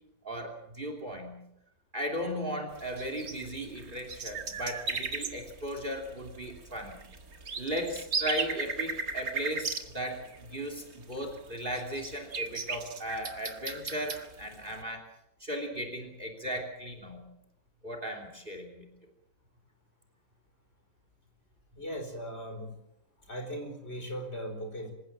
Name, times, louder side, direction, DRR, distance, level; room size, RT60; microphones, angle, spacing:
voice 1, 0.2-1.4 1.9-7.0 7.6-15.1 15.4-17.2 17.8-18.8, equal, 25° right, 5 dB, 3.3 m, -36 dB
sound 1, 2.7-14.8, right 4 dB, 50° right, 2.3 m, -37 dB
voice 2, 21.8-22.7 23.3-24.9, equal, 30° left, 4 dB, 5.0 m, -38 dB
26.5 x 16.0 x 7.5 m, 0.80 s
omnidirectional pair, 2.1 m